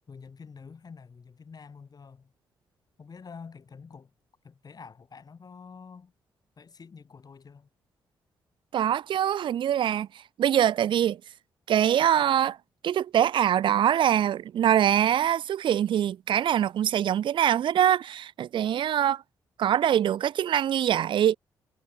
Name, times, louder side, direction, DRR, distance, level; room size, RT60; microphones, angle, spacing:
voice 1, 0.1-2.3 3.0-4.1 4.4-6.1 6.6-7.7, left 5 dB, 45° left, 4.2 m, -47 dB
voice 2, 8.7-10.1 10.4-11.2 11.7-12.6 12.8-19.2 19.6-21.4, right 10 dB, 65° right, 0.6 m, -23 dB
supercardioid pair, 55°, 9 cm